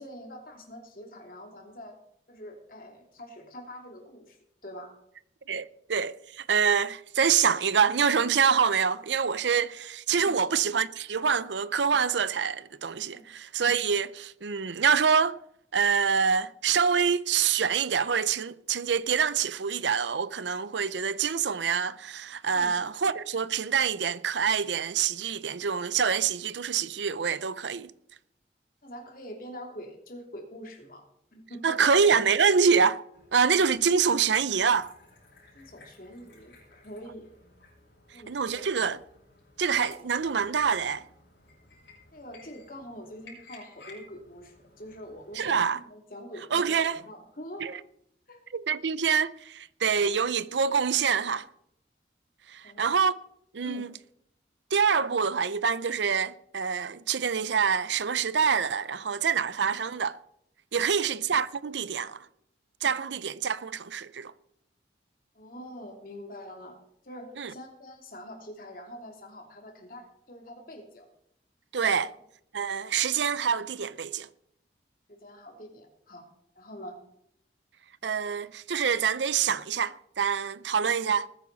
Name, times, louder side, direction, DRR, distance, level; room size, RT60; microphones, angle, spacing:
voice 1, 0.0-2.0 2.3-4.9 10.2-10.4 13.1-13.3 22.5-22.8 28.8-31.0 31.3-32.0 35.5-37.3 38.1-38.7 42.1-47.8 48.3-48.4 52.6-53.0 53.6-53.9 60.8-61.2 63.0-63.2 65.3-66.8 67.0-71.0 71.9-72.1 73.0-73.1 75.1-76.3 76.5-77.0 80.8-81.0, equal, 50° left, 2.9 m, -45 dB
voice 2, 5.5-15.4 15.7-27.9 31.6-33.0 33.3-34.9 38.3-39.0 39.6-41.0 45.4-45.8 46.5-47.0 47.6-47.7 48.5-51.5 52.5-53.2 53.5-53.9 54.7-60.2 60.7-62.3 62.8-64.3 67.4-67.5 71.7-72.1 72.5-74.3 78.0-81.3, right 6 dB, 80° right, 0.6 m, -26 dB
sound 1, 33.1-45.7, left 3 dB, 85° left, 7.1 m, -56 dB
20.0 x 10.0 x 4.1 m
head